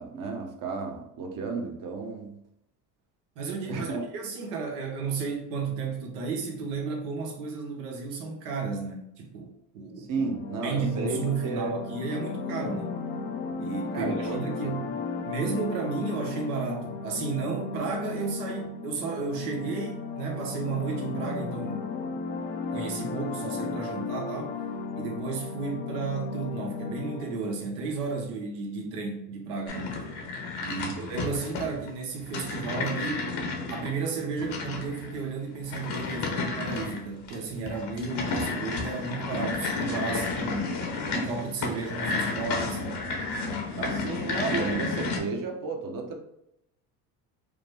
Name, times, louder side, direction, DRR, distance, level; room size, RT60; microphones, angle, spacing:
voice 1, 0.0-2.4 3.7-4.0 10.0-11.7 13.9-14.7 30.7-31.0 43.8-46.2, right 4 dB, 45° right, 3 dB, 1.0 m, -33 dB
voice 2, 3.4-10.2 10.6-13.0 13.6-14.9 15.2-21.9 22.7-24.5 24.9-30.0 30.6-33.3 33.7-40.8 41.1-43.0, right 4 dB, 85° right, 1 dB, 1.2 m, -33 dB
sound 1, 10.2-27.6, left 4 dB, 30° left, 0.5 m, -35 dB
sound 2, 29.7-45.2, left 3 dB, 60° left, 1.0 m, -32 dB
5.0 x 2.1 x 3.3 m, 0.80 s
supercardioid pair, 95°, 45 cm